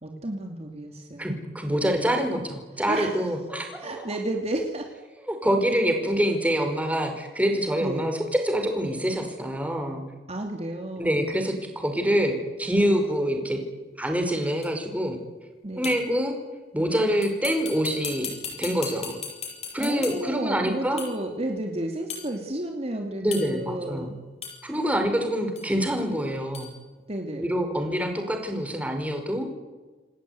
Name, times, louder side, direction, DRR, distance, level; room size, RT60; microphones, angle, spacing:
voice 1, 0.0-1.4 2.9-3.1 3.8-4.9 7.8-8.1 10.3-11.2 15.6-16.0 19.8-24.2 27.1-27.5, right 1 dB, 35° right, 3 dB, 2.8 m, -32 dB
voice 2, 1.2-4.1 5.3-10.0 11.0-13.6 14.0-15.2 15.7-16.3 16.7-18.3 18.6-19.2 19.7-21.0 23.2-24.1 24.6-26.7 27.4-29.5, equal, 10° right, 4 dB, 5.2 m, -26 dB
sound 1, 14.6-14.7 15.8-16.2 17.2-20.4 21.0-21.3 22.1-22.3 23.3-23.7 24.4-24.7 25.6-25.7 26.5-26.7, left 6 dB, 40° left, 7.1 m, -37 dB
28.5 x 19.0 x 9.5 m, 1.3 s
head